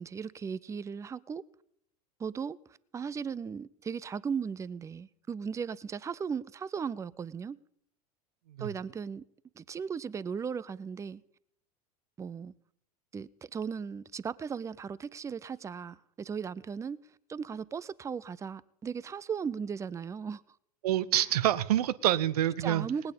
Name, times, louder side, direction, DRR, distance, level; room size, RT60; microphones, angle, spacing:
voice 1, 0.0-1.4 2.2-2.6 2.9-7.6 8.6-9.2 9.6-11.2 12.2-12.5 13.1-17.0 17.3-20.4 22.6-23.1, right 6 dB, 15° right, 0.4 m, -37 dB
voice 2, 20.8-22.9, right 12 dB, 75° right, 0.7 m, -27 dB
19.0 x 8.8 x 5.3 m
hypercardioid pair, 90°, 20 cm